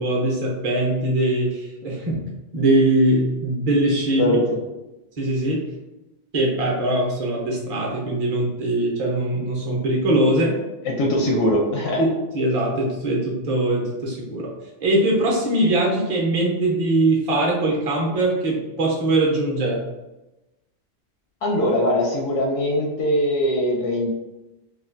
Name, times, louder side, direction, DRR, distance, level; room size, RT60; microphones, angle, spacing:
voice 1, 0.0-2.2 2.5-4.4 5.2-5.6 6.3-10.5 12.3-14.5 14.8-19.8, right 1 dB, 40° right, -2 dB, 0.6 m, -21 dB
voice 2, 4.2-4.6 11.0-12.0 21.4-24.1, left 1 dB, 85° left, -1 dB, 1.0 m, -21 dB
3.1 x 2.3 x 2.5 m, 1.0 s
omnidirectional pair, 1.3 m